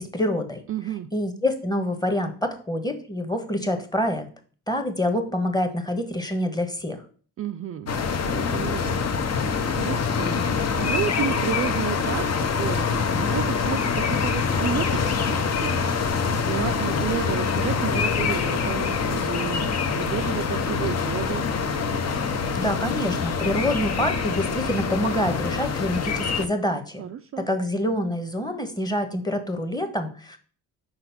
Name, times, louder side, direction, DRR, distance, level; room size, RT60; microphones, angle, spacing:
voice 1, 0.0-0.6 1.1-4.3 4.7-7.0 22.5-27.0 27.4-30.4, left 1 dB, 10° left, 7 dB, 1.1 m, -26 dB
voice 2, 0.7-1.1 7.4-7.9 8.2-9.0 9.3-15.9 16.3-21.5 27.0-27.5, right 10 dB, 40° right, 8 dB, 0.4 m, -32 dB
sound 1, 7.9-26.5, left 5 dB, 45° left, 0.8 m, -25 dB
4.9 x 4.1 x 5.8 m, 0.43 s
cardioid pair, 80°, 36 cm